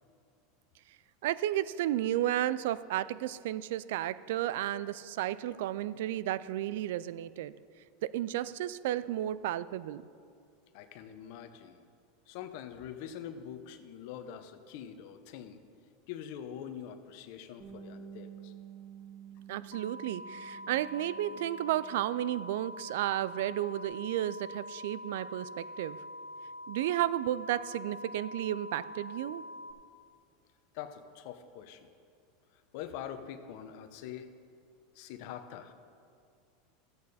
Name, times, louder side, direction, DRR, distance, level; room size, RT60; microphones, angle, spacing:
voice 1, 1.2-7.5 8.0-10.0 19.5-26.0 26.7-29.4, right 13 dB, 70° right, 17 dB, 0.3 m, -33 dB
voice 2, 10.7-11.8 12.3-15.6 16.1-18.5 30.7-31.8 32.7-34.3 34.9-35.7, left 9 dB, 65° left, 9 dB, 0.9 m, -44 dB
Bass guitar, 17.6-22.3 22.6-23.8, right 8 dB, 35° right, 2.2 m, -51 dB
sound 1, 19.7-29.7, left 1 dB, 80° left, 1.2 m, -45 dB
13.5 x 8.4 x 4.2 m, 2.3 s
hypercardioid pair, 105°, 0 cm